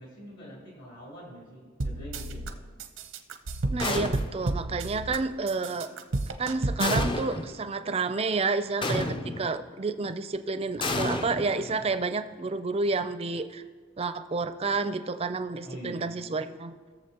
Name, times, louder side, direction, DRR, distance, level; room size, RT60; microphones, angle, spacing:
voice 1, 0.0-2.6 15.6-16.1, equal, 60° left, -4 dB, 3.6 m, -44 dB
sound 1, 1.8-2.5 2.8-5.2 5.5-7.1, right 2 dB, 90° right, 0.8 m, -31 dB
voice 2, 3.7-5.9 6.4-13.6 14.0-16.7, right 3 dB, 30° right, 10 dB, 0.5 m, -30 dB
sound 2, 3.8-4.6 6.8-7.6 8.8-9.6 10.8-12.0, left 2 dB, 25° left, 0.5 m, -31 dB
20.0 x 7.1 x 2.9 m, 1.5 s
head